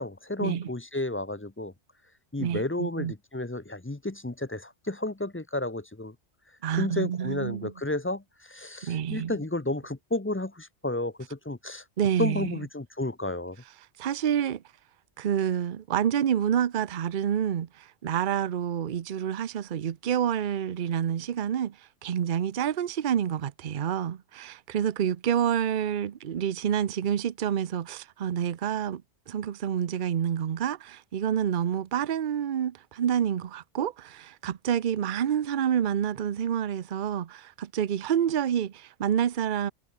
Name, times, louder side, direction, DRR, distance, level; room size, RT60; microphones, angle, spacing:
voice 1, 0.0-1.7 2.3-6.1 6.7-11.8 12.2-13.6, left 2 dB, 15° left, 0.7 m, -32 dB
voice 2, 2.4-3.1 6.6-7.7 8.8-9.4 12.0-12.6 14.0-14.6 15.2-29.0 29.3-39.7, right 9 dB, 50° right, 0.8 m, -28 dB
omnidirectional pair, 1.2 m